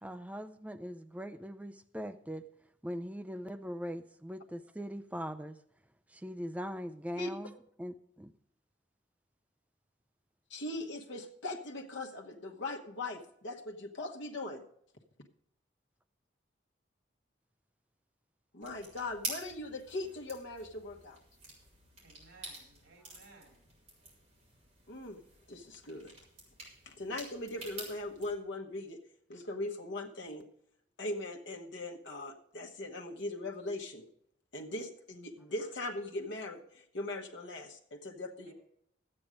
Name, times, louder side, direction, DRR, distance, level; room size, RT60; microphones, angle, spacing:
voice 1, 0.0-2.4 2.8-5.6 6.1-7.5 7.8-8.3, equal, 5° right, 0.4 m, -41 dB
voice 2, 10.5-14.6 18.5-21.2 24.9-25.2 25.5-26.1 26.8-29.0 29.3-30.4 31.0-34.1 34.5-38.5, left 2 dB, 70° left, 1.2 m, -40 dB
sound 1, 18.6-28.3, right 3 dB, 35° right, 3.6 m, -48 dB
voice 3, 22.0-23.6 38.4-38.5, right 3 dB, 85° right, 3.6 m, -59 dB
12.5 x 8.8 x 5.0 m
head